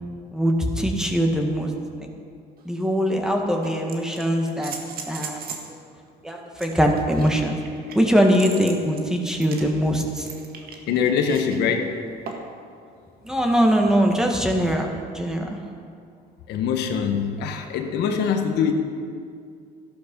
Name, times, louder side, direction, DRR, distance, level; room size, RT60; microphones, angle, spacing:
voice 1, 0.3-1.7 2.6-4.8 5.1-5.7 6.2-7.6 7.9-10.3 11.8-11.9 13.2-15.6, equal, 5° right, 1 dB, 1.7 m, -22 dB
sound 1, 2.6-2.7 3.6-5.7 6.6-11.6 12.3-12.6 14.2-14.3, right 5 dB, 65° right, 1.8 m, -38 dB
voice 2, 10.9-11.9 16.5-18.7, left 7 dB, 80° left, 4 dB, 1.3 m, -23 dB
14.0 x 11.5 x 5.4 m, 2.3 s
cardioid pair, 110°, 17 cm